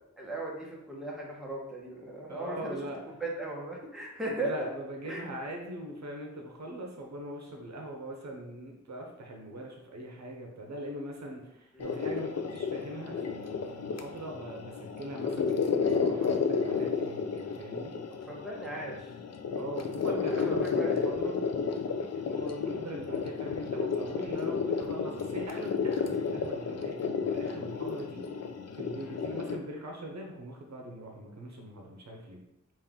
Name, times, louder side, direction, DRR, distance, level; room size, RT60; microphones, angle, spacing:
voice 1, 0.2-2.8 3.2-4.7 5.0-5.2 11.7-12.0 18.3-19.1 20.3-21.0 23.0-23.2 29.0-29.2, right 2 dB, ahead, -4 dB, 1.1 m, -37 dB
voice 2, 2.3-3.0 4.4-17.9 19.5-21.4 22.1-28.3 28.7-32.4, right 1 dB, 65° right, 1 dB, 0.8 m, -41 dB
sound 1, 11.8-29.6, left 5 dB, 60° left, 0.5 m, -32 dB
5.3 x 2.6 x 3.7 m, 0.87 s
wide cardioid pair, 105°, 29 cm